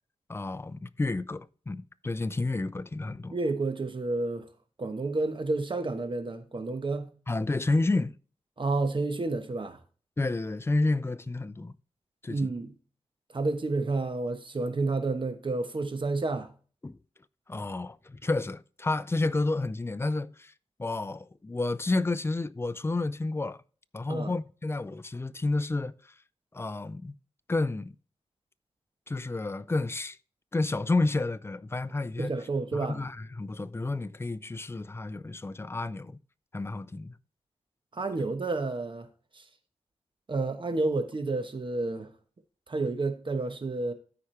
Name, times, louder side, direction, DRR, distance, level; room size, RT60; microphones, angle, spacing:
voice 1, 0.3-3.3 7.3-8.2 10.2-11.7 12.2-12.5 16.8-17.0 17.5-20.5 20.8-23.6 23.9-26.1 26.5-27.1 27.5-28.0 29.1-30.2 30.5-32.3 32.7-36.2 36.5-37.2, left 2 dB, 20° left, 0.5 m, -30 dB
voice 2, 3.3-4.4 4.8-7.1 8.6-9.8 12.3-12.7 13.3-16.5 24.1-24.3 32.2-33.0 37.9-39.1 39.3-39.4 40.3-42.1 42.7-43.9, right 3 dB, 45° right, 1.1 m, -30 dB
13.0 x 4.9 x 3.3 m
wide cardioid pair, 75°, 11 cm